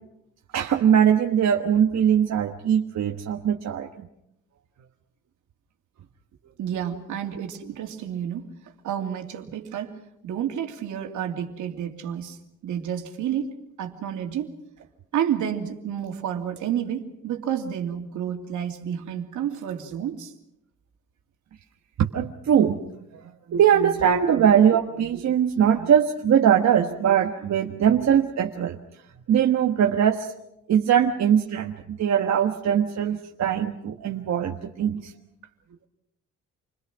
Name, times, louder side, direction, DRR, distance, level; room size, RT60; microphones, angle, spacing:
voice 1, 0.5-4.1 22.0-22.8 23.1-23.2 23.5-28.8 29.3-30.3 30.7-35.1, right 8 dB, 60° right, 2 dB, 1.5 m, -21 dB
voice 2, 6.6-8.5 8.8-14.5 14.8-14.9 15.1-20.3, right 9 dB, 80° right, 3 dB, 2.8 m, -30 dB
28.5 x 21.5 x 6.1 m, 0.83 s
cardioid pair, 90°, 30 cm